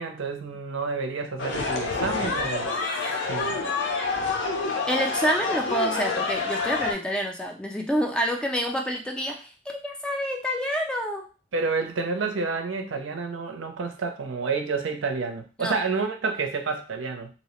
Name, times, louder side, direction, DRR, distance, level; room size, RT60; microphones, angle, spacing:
voice 1, 0.0-2.8 3.3-3.6 11.5-17.3, right 4 dB, 85° right, 5 dB, 0.5 m, -29 dB
sound 1, 1.4-6.9, left 4 dB, 65° left, 0.6 m, -27 dB
voice 2, 4.9-11.3 15.6-15.8, equal, 5° left, 2 dB, 0.3 m, -28 dB
2.7 x 2.0 x 2.9 m, 0.33 s
head